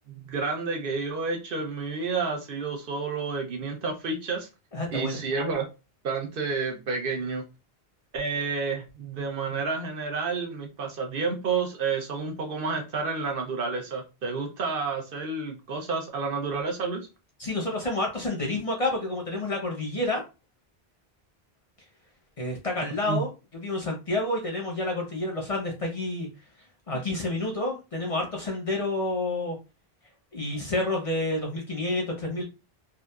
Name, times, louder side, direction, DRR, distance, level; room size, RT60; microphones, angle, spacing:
voice 1, 0.1-4.5 4.9-5.7 6.0-7.5 8.1-17.1 23.1-23.2, right 4 dB, 65° right, 3 dB, 0.8 m, -30 dB
voice 2, 4.7-5.2 17.4-20.2 22.4-26.3 26.9-29.6 30.3-32.4, left 2 dB, 40° left, 0 dB, 0.6 m, -29 dB
2.8 x 2.3 x 2.2 m, 0.29 s
omnidirectional pair, 1.0 m